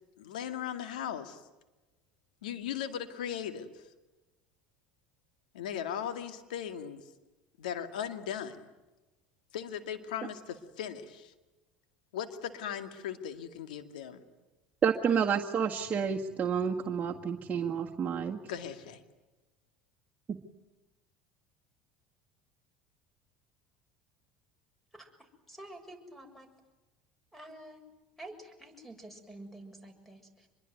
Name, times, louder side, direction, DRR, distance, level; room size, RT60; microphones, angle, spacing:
voice 1, 0.2-1.4 2.4-3.8 5.5-7.0 7.6-8.7 9.5-11.3 12.1-14.2 18.5-19.0, left 9 dB, 85° left, 8 dB, 2.2 m, -38 dB
voice 2, 14.8-18.4, right 7 dB, 35° right, -1 dB, 1.8 m, -29 dB
voice 3, 25.0-26.5 27.3-27.8 28.2-30.5, right 1 dB, 5° left, 7 dB, 6.7 m, -49 dB
25.5 x 22.5 x 9.4 m, 1.1 s
hypercardioid pair, 80°, 4 cm